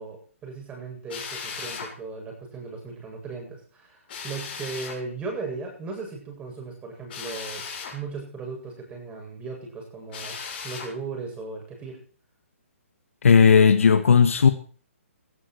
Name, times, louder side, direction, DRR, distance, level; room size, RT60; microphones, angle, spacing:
voice 1, 0.0-7.6 7.9-10.4 10.6-12.0, right 4 dB, 15° right, 1 dB, 7.8 m, -37 dB
Drill, 1.1-1.9 4.1-5.0 7.1-8.0 10.1-10.9, left 5 dB, 45° left, 6.4 m, -36 dB
voice 2, 13.2-14.5, left 6 dB, 70° left, 9 dB, 1.7 m, -15 dB
17.5 x 13.0 x 4.9 m, 0.43 s
figure-of-eight pair, 135°, 8 cm